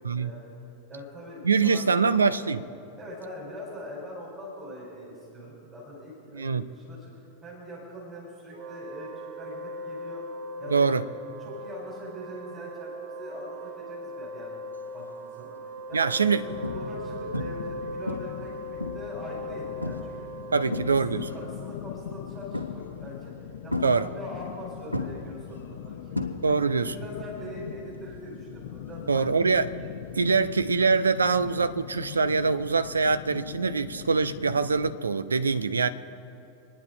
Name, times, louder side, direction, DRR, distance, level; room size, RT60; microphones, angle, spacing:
voice 1, 0.1-0.5 0.9-2.3 3.0-10.3 10.6-10.9 11.4-14.6 14.9-16.0 16.4-18.6 18.9-20.2 20.5-26.2 26.5-29.4, equal, 25° right, 4.4 m, -42 dB
voice 2, 1.4-2.7 6.3-6.7 10.7-11.0 15.9-16.4 20.5-21.2 23.8-24.1 26.4-26.9 29.1-29.7 30.1-35.9, right 4 dB, 75° right, 0.6 m, -24 dB
Wind instrument woodwind instrument, 8.5-21.9, equal, 50° right, 1.2 m, -39 dB
sound 1, 15.0-15.3 15.9-16.0 16.6-17.1 17.3-17.7 18.1-19.2 19.8-20.2 20.5-21.3 22.5-23.1 23.7-24.6 24.9-26.8 27.1-27.5 29.6-29.7, left 2 dB, 90° left, 1.1 m, -34 dB
sound 2, 16.5-35.0, left 11 dB, 55° left, 0.5 m, -41 dB
26.5 x 10.0 x 4.0 m
figure-of-eight pair, 90°, 0 cm